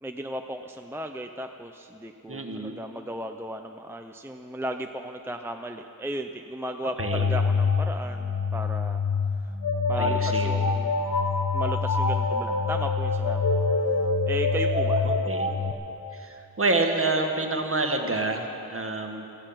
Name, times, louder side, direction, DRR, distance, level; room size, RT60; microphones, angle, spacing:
voice 1, 0.0-9.0 9.4-9.5 9.9-10.9 11.5-13.6 14.3-15.1, right 1 dB, 5° right, 5 dB, 0.6 m, -35 dB
voice 2, 2.3-2.8 7.0-7.2 10.0-10.5 15.0-15.5 16.1-19.2, right 2 dB, 40° right, 4 dB, 1.6 m, -28 dB
sound 1, 7.0-15.7, left 4 dB, 65° left, 1.3 m, -25 dB
15.5 x 15.5 x 5.8 m, 2.8 s
wide cardioid pair, 75°, 35 cm